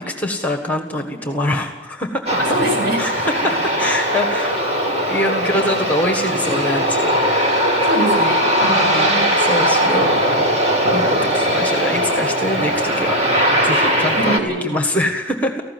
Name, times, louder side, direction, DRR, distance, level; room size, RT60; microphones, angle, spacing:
voice 1, 0.0-2.4 3.0-3.5 3.8-4.5 5.1-7.5 8.6-10.2 10.9-13.2 13.6-15.6, left 1 dB, 10° left, 4 dB, 1.5 m, -24 dB
Aircraft, 2.3-14.4, equal, 35° right, 2.5 m, -19 dB
voice 2, 2.4-3.0 3.4-3.5 7.8-9.6 9.8-10.5 14.2-14.7, right 1 dB, 55° right, 0 dB, 7.6 m, -25 dB
18.5 x 15.5 x 9.4 m, 1.2 s
head